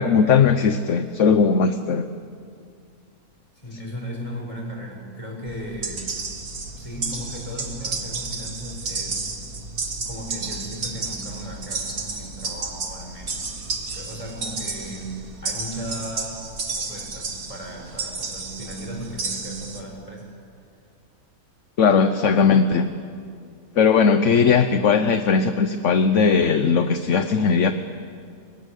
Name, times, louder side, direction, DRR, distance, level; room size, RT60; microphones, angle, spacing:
voice 1, 0.0-2.1 21.8-22.9 23.7-27.7, left 5 dB, 60° left, 9 dB, 1.2 m, -18 dB
voice 2, 3.5-6.1 6.8-9.3 10.1-15.1 15.4-16.4 16.8-20.3, equal, 20° left, -1 dB, 7.1 m, -36 dB
sound 1, 5.5-19.8, right 3 dB, 85° right, 2.7 m, -32 dB
29.5 x 24.0 x 8.3 m, 2.3 s
omnidirectional pair, 1.5 m